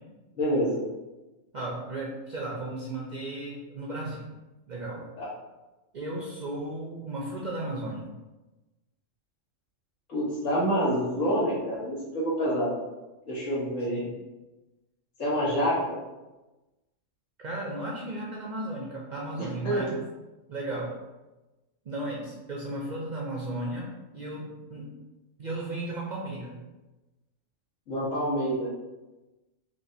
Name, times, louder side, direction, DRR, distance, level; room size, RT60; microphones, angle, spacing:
voice 1, 0.4-0.8 5.2-5.3 10.1-12.8 13.3-14.0 15.2-15.8 19.6-19.8 27.9-28.7, equal, 80° left, -7 dB, 1.6 m, -27 dB
voice 2, 1.5-4.3 4.7-5.0 5.9-8.1 13.9-14.1 17.4-20.0 20.5-20.9 21.8-24.9 25.4-26.5, right 1 dB, 55° right, -4 dB, 0.5 m, -35 dB
4.5 x 2.5 x 2.7 m, 1.1 s
omnidirectional pair, 1.3 m